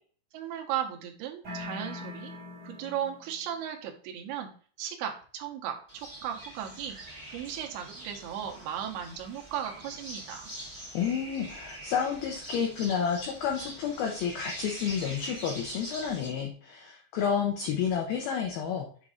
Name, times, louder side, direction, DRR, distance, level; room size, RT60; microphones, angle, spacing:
voice 1, 0.3-2.3 2.6-4.5 4.8-5.8 6.2-7.0 7.3-10.5, right 9 dB, 75° right, 3 dB, 2.6 m, -36 dB
sound 1, 1.4-3.4, left 2 dB, 35° right, 1.9 m, -41 dB
sound 2, 5.9-16.3, right 1 dB, 5° right, 1.5 m, -44 dB
voice 2, 10.9-18.9, left 7 dB, 80° left, 1 dB, 2.2 m, -30 dB
7.3 x 2.6 x 4.8 m, 0.43 s
omnidirectional pair, 5.3 m